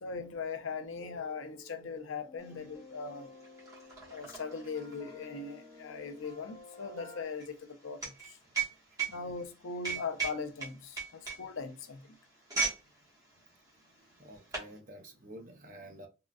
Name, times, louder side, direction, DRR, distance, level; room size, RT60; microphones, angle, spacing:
voice 1, 0.0-3.3 4.1-8.4 9.1-12.1, left 5 dB, 75° left, 0.5 m, -40 dB
sound 1, 1.0-7.2, left 2 dB, 20° left, 0.5 m, -53 dB
sound 2, 2.5-2.6 2.9-12.9 13.2-13.4 14.1-14.7, right 5 dB, 15° right, 1.0 m, -37 dB
voice 2, 14.2-16.1, right 1 dB, 40° right, 0.6 m, -49 dB
3.7 x 2.3 x 2.4 m
head